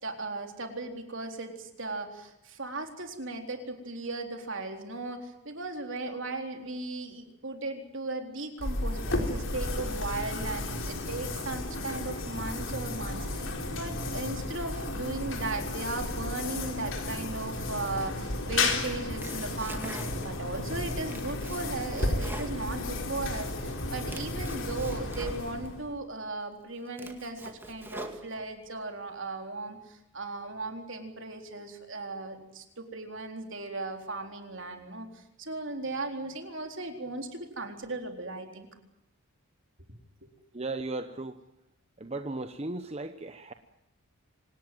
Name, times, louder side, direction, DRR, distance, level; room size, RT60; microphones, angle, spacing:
voice 1, 0.0-38.7 40.2-40.3, right 2 dB, 60° right, 4 dB, 4.0 m, -37 dB
sound 1, 8.6-26.0, left 2 dB, 60° left, 4.2 m, -33 dB
Domestic sounds home sounds, 18.9-20.5 20.8-23.3 23.7-25.7 26.3-26.4 26.8-28.7, right 1 dB, 10° right, 2.1 m, -45 dB
voice 2, 40.5-41.4 42.0-43.5, right 2 dB, 30° right, 8 dB, 0.9 m, -36 dB
26.0 x 18.5 x 9.3 m, 0.86 s
head